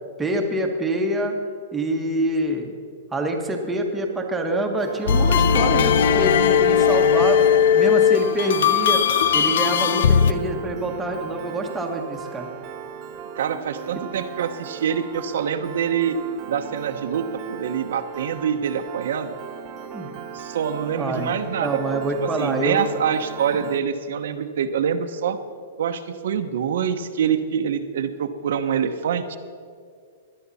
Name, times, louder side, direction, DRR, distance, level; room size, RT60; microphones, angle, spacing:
voice 1, 0.2-1.3 1.7-2.7 3.1-7.5 7.7-9.0 9.3-12.5 19.9-20.1 21.0-22.8 23.5-23.6, right 1 dB, 10° right, 2 dB, 1.3 m, -26 dB
Piano, 4.8-23.8, right 7 dB, 30° right, 0.9 m, -37 dB
sound 1, 5.1-10.3, left 7 dB, 70° left, 0.6 m, -18 dB
voice 2, 13.4-16.2 16.5-19.3 20.3-21.8 22.4-25.4 25.8-29.4, right 8 dB, 70° right, 8 dB, 0.9 m, -25 dB
17.5 x 11.5 x 4.2 m, 2.2 s
hypercardioid pair, 160°, 0 cm